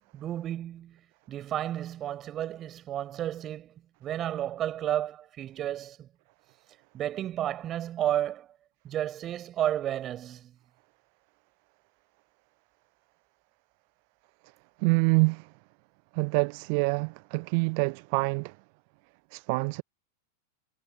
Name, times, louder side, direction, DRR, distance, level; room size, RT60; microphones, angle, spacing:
voice 1, 0.1-1.0 1.3-6.1 6.9-8.5 8.8-10.6, right 11 dB, 30° right, 7.3 m, -32 dB
voice 2, 14.8-15.5 16.1-18.6 19.3-19.8, right 37 dB, 45° right, 1.2 m, -26 dB
figure-of-eight pair, 90°, 0 cm